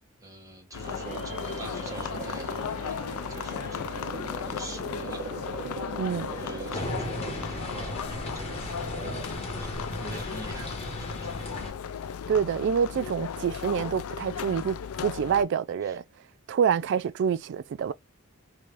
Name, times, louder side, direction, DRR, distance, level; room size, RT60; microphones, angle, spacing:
voice 1, 0.2-3.0 3.3-5.3 6.3-8.9 9.3-9.7 10.0-11.5 15.8-16.0, right 2 dB, 15° right, 1.3 m, -45 dB
sound 1, 0.7-15.4, left 7 dB, 85° left, 0.4 m, -36 dB
sound 2, 0.8-9.2, right 3 dB, 35° right, 1.3 m, -40 dB
voice 2, 6.0-6.3 12.3-16.0 16.5-17.9, right 7 dB, 55° right, 0.3 m, -27 dB
sound 3, 6.7-11.7, equal, 30° left, 1.2 m, -36 dB
3.2 x 2.5 x 3.3 m
head